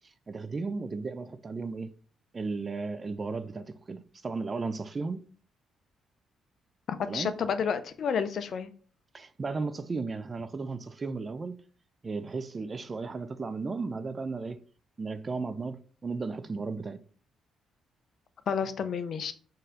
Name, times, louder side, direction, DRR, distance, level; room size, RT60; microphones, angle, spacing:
voice 1, 0.3-1.9 2.3-5.2 7.1-7.4 9.1-11.6 12.0-14.6 15.0-17.0, right 4 dB, 35° right, 0.3 m, -35 dB
voice 2, 7.0-8.7 18.5-19.3, left 6 dB, 60° left, 0.4 m, -30 dB
3.9 x 2.6 x 3.8 m
cardioid pair, 90°, 0 cm